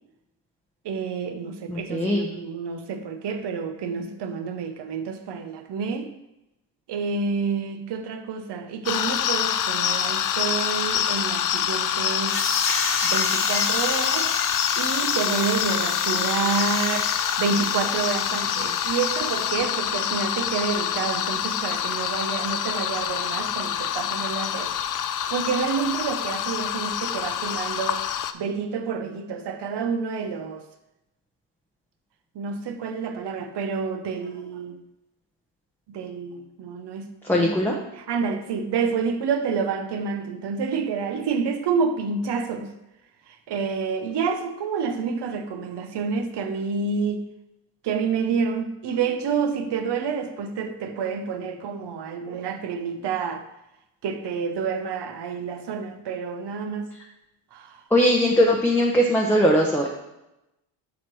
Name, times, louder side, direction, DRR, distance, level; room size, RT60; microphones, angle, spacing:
voice 1, 0.8-6.1 6.9-12.4 13.0-14.4 14.8-17.1 17.4-24.7 25.3-28.0 28.3-30.6 32.3-34.8 35.9-37.5 37.9-42.7 43.5-47.2 47.8-53.4 54.0-56.9 57.5-57.8, right 5 dB, 55° right, 7 dB, 0.9 m, -28 dB
voice 2, 1.7-2.3 37.3-37.8 57.9-59.9, equal, 5° left, -1 dB, 0.9 m, -20 dB
sound 1, 8.9-28.3, left 10 dB, 45° left, 0.5 m, -26 dB
sound 2, 12.3-19.5, left 3 dB, 25° left, 0.9 m, -30 dB
7.4 x 3.0 x 6.1 m, 0.91 s
cardioid pair, 85°, 48 cm